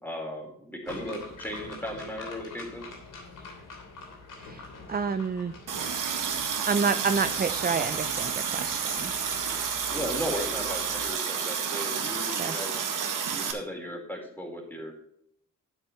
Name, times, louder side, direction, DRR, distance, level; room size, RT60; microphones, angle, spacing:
voice 1, 0.0-2.8 9.9-14.9, equal, 5° left, 1 dB, 4.2 m, -36 dB
sound 1, 0.9-11.1, left 3 dB, 80° left, 3.2 m, -45 dB
voice 2, 4.4-5.5 6.6-9.1 12.4-12.6, right 5 dB, 30° right, 10 dB, 0.6 m, -29 dB
Water tap faucet, 5.7-13.5, right 6 dB, 80° right, 1.8 m, -30 dB
12.0 x 8.2 x 3.2 m, 0.71 s
cardioid pair, 75°, 31 cm